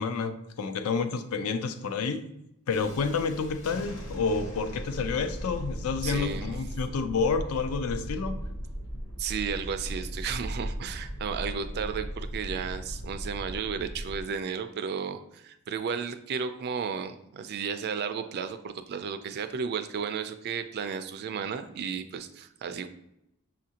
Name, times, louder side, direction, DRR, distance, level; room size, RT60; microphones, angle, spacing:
voice 1, 0.0-2.2 2.7-8.3, left 5 dB, 80° left, 9 dB, 0.4 m, -29 dB
Thunderstorm, 2.7-14.2, equal, 65° left, 0.9 m, -37 dB
voice 2, 6.0-6.5 9.2-22.9, right 6 dB, 50° right, 9 dB, 0.3 m, -33 dB
6.3 x 2.5 x 2.8 m, 0.83 s
head